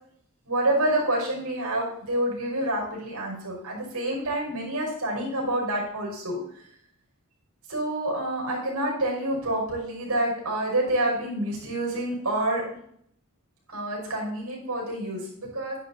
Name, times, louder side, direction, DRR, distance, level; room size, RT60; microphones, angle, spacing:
voice 1, 0.5-6.4 7.7-12.6 13.7-15.8, right 1 dB, 75° right, -2 dB, 5.7 m, -28 dB
11.5 x 10.0 x 4.3 m, 0.67 s
head